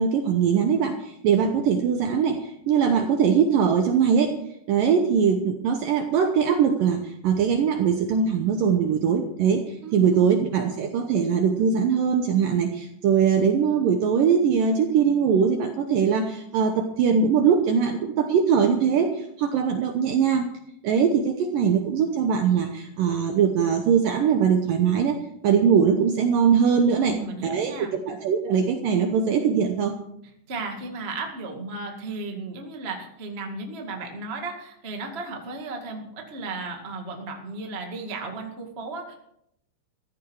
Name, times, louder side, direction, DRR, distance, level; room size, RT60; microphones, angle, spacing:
voice 1, 0.0-4.4 4.7-20.5 20.8-25.2 25.4-30.0, right 7 dB, 75° right, 5 dB, 2.1 m, -21 dB
voice 2, 9.8-10.2 26.9-27.9 30.5-39.1, right 3 dB, 40° right, 2 dB, 0.9 m, -35 dB
15.0 x 13.5 x 4.8 m, 0.76 s
omnidirectional pair, 5.1 m